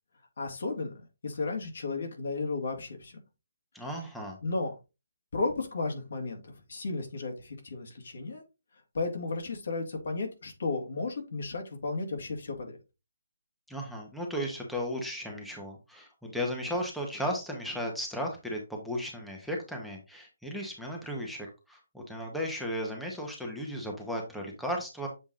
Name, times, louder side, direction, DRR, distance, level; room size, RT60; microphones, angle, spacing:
voice 1, 0.4-3.2 4.4-4.7 5.3-8.4 8.9-12.8, left 3 dB, 65° left, 3 dB, 2.1 m, -34 dB
voice 2, 3.7-4.4 13.7-25.1, equal, ahead, -1 dB, 1.2 m, -35 dB
7.5 x 3.5 x 3.8 m, 0.27 s
hypercardioid pair, 155°, 0 cm